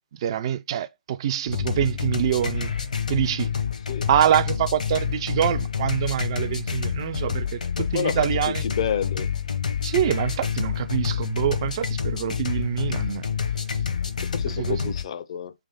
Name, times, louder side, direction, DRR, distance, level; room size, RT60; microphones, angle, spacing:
voice 1, 0.2-2.7 3.1-3.5 4.1-7.6 7.9-8.6 9.8-13.2 14.5-14.9, right 10 dB, 35° right, 0.3 m, -25 dB
sound 1, 1.5-15.1, left 7 dB, 70° left, 0.9 m, -28 dB
voice 2, 7.8-8.2 8.6-9.3 14.2-15.5, left 8 dB, 45° left, 0.4 m, -29 dB
3.4 x 3.1 x 3.8 m
figure-of-eight pair, 135°, 4 cm